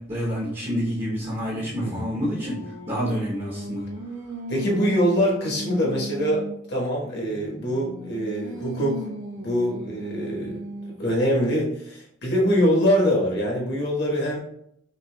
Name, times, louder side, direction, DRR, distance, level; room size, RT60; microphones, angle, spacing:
voice 1, 0.0-2.6 2.9-3.9, equal, 30° right, -5 dB, 0.9 m, -28 dB
Singing, 1.2-6.7 7.3-11.1, equal, 85° right, 0.9 m, -37 dB
voice 2, 4.5-9.0 9.4-10.6 11.0-14.4, equal, 60° left, -3 dB, 1.4 m, -24 dB
5.3 x 2.4 x 2.3 m, 0.71 s
head